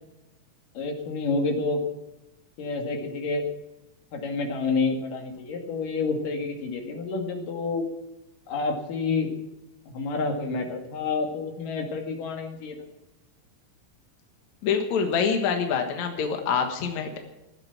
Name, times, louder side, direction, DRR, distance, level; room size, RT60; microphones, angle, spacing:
voice 1, 0.8-1.8 2.6-3.4 4.1-7.9 8.5-9.3 9.9-12.8, left 3 dB, 85° left, 3 dB, 3.9 m, -29 dB
voice 2, 14.6-17.2, left 6 dB, 65° left, 4 dB, 2.8 m, -25 dB
16.5 x 12.0 x 5.9 m, 0.95 s
omnidirectional pair, 3.7 m